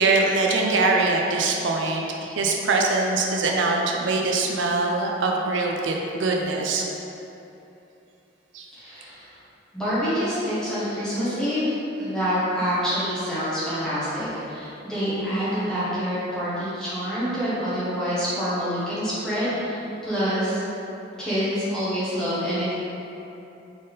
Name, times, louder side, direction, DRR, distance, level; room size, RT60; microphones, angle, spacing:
voice 1, 0.0-6.9 8.5-8.6, right 3 dB, 75° right, 0 dB, 0.4 m, -23 dB
voice 2, 8.7-9.3 9.7-20.6 21.2-22.8, equal, 5° left, -12 dB, 1.2 m, -26 dB
4.0 x 3.5 x 3.9 m, 2.9 s
head